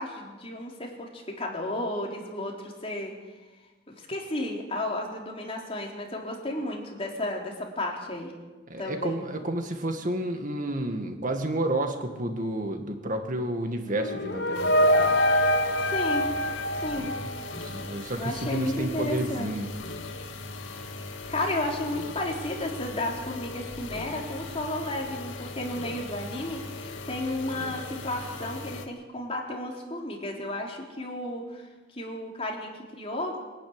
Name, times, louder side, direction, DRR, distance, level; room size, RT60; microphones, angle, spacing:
voice 1, 0.0-3.1 3.9-8.3 8.8-9.2 15.9-16.3 16.8-17.1 18.2-19.5 21.3-31.6 31.9-33.4, left 1 dB, 30° left, -1 dB, 4.1 m, -33 dB
voice 2, 8.7-14.8 17.0-17.1 17.5-19.7, right 1 dB, 45° right, 5 dB, 2.0 m, -30 dB
sound 1, 13.9-17.8, equal, 60° left, 1.2 m, -25 dB
sound 2, 14.5-28.9, left 3 dB, 85° left, 2.2 m, -39 dB
23.5 x 12.0 x 9.8 m, 1.2 s
head